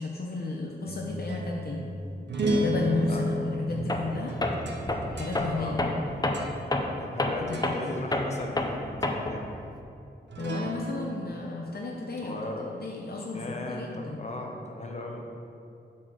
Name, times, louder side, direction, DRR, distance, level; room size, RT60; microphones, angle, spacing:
voice 1, 0.0-1.9 2.5-4.3 5.1-5.8 7.5-7.7 10.4-12.4 12.7-14.3, left 3 dB, 60° left, -1 dB, 0.8 m, -33 dB
sound 1, 0.9-7.2 7.5-7.9 10.3-11.3, right 1 dB, 75° right, 0.8 m, -33 dB
Tools, 3.9-4.1 4.4-9.5, left 2 dB, 20° left, 0.7 m, -29 dB
voice 2, 7.0-9.5 12.2-12.8 13.3-15.2, left 2 dB, 40° left, 1 dB, 1.0 m, -37 dB
7.5 x 4.4 x 6.3 m, 2.6 s
wide cardioid pair, 90°, 18 cm